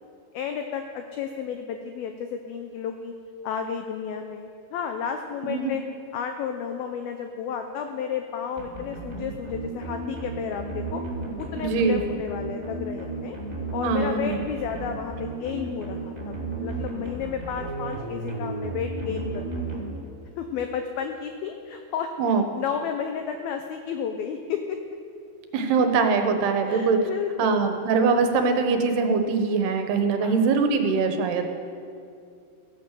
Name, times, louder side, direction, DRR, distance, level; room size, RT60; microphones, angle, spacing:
voice 1, 0.3-3.1 3.4-5.8 6.1-11.0 11.4-13.4 13.7-19.8 20.4-22.1 22.5-24.8 26.7-27.6 30.2-30.4, left 7 dB, 80° left, 6 dB, 2.2 m, -32 dB
sound 1, 8.6-20.4, right 2 dB, 15° right, 1.6 m, -34 dB
voice 2, 11.5-12.0 13.8-14.4 22.2-22.5 25.5-27.0 27.4-31.5, right 4 dB, 70° right, 6 dB, 2.8 m, -22 dB
15.5 x 11.5 x 7.5 m, 2.4 s
omnidirectional pair, 5.2 m